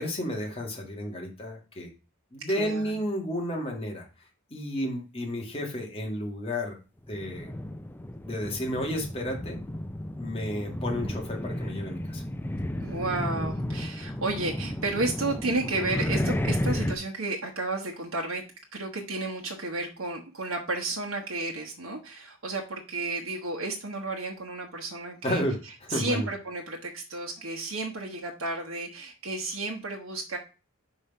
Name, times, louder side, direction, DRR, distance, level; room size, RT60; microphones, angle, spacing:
voice 1, 0.0-1.9 2.3-4.1 4.5-6.8 7.1-7.5 8.2-9.6 10.2-12.2 25.2-26.3, equal, 30° left, 0 dB, 2.3 m, -32 dB
voice 2, 2.5-2.9 12.8-18.4 18.7-25.4 25.9-30.4, right 2 dB, 70° right, 1 dB, 1.1 m, -32 dB
sound 1, 7.1-17.0, left 1 dB, 10° left, 0.4 m, -32 dB
5.5 x 4.9 x 5.4 m, 0.32 s
head